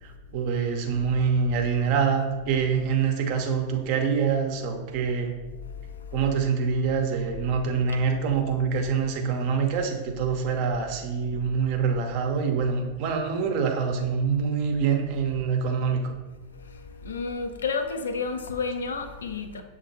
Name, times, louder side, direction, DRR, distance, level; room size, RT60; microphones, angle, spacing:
voice 1, 0.0-5.3 6.1-16.1, right 6 dB, 45° right, 0.6 m, -25 dB
voice 2, 17.0-19.6, left 4 dB, 70° left, 0.4 m, -30 dB
6.9 x 2.6 x 2.6 m
figure-of-eight pair, 90°, 0 cm